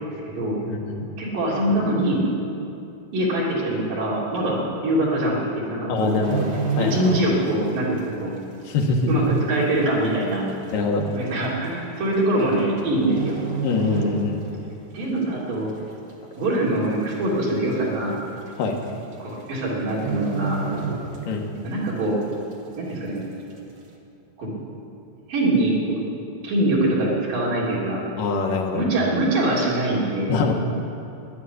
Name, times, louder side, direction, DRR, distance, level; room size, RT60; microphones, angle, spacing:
voice 1, 0.0-0.6 1.2-2.2 3.1-6.2 6.8-8.3 9.1-10.4 11.1-13.4 14.9-15.8 16.4-18.2 19.2-20.6 21.6-22.2 22.8-23.2 24.4-24.6 25.3-26.0 26.4-28.0 28.7-30.4, right 1 dB, 70° right, -5 dB, 4.9 m, -23 dB
voice 2, 0.6-1.1 5.9-6.9 8.7-9.2 10.7-11.1 13.6-14.4 18.6-18.8 21.3-21.5 28.2-28.8 30.3-30.5, left 3 dB, 75° left, 1 dB, 3.0 m, -24 dB
sound 1, 6.0-7.7 8.0-8.3 8.8-8.9 9.8-9.9 10.1-10.2 11.1-11.3 12.4-12.8 13.1-14.6 15.0-15.2 15.7-16.2 16.6-16.7 16.9-17.0 17.4-17.5 18.5-18.6 18.8-19.1 19.4-19.5 19.9-21.6 21.9-22.0, right 4 dB, 50° right, 1.5 m, -29 dB
11.5 x 11.0 x 10.0 m, 2.7 s
omnidirectional pair, 4.1 m